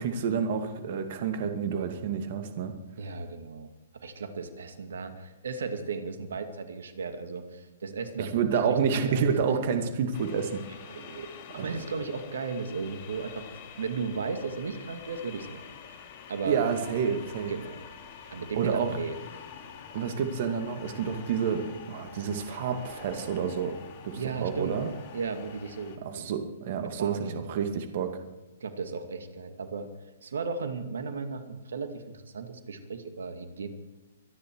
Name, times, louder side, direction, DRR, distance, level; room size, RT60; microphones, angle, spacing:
voice 1, 0.0-2.7 8.2-10.6 11.6-11.8 16.4-17.5 18.5-18.9 19.9-23.8 24.0-24.9 26.0-28.2, right 7 dB, 50° right, 6 dB, 2.3 m, -29 dB
voice 2, 3.0-3.7 3.9-9.3 10.7-13.5 13.8-15.7 16.3-16.6 17.5-17.8 18.3-19.2 24.1-24.8 25.1-26.3 26.8-27.4 28.6-33.7, right 4 dB, 70° right, 8 dB, 2.3 m, -35 dB
sound 1, 10.1-26.0, left 7 dB, 45° left, 2.7 m, -47 dB
24.5 x 10.5 x 4.8 m, 1.1 s
hypercardioid pair, 125°, 0 cm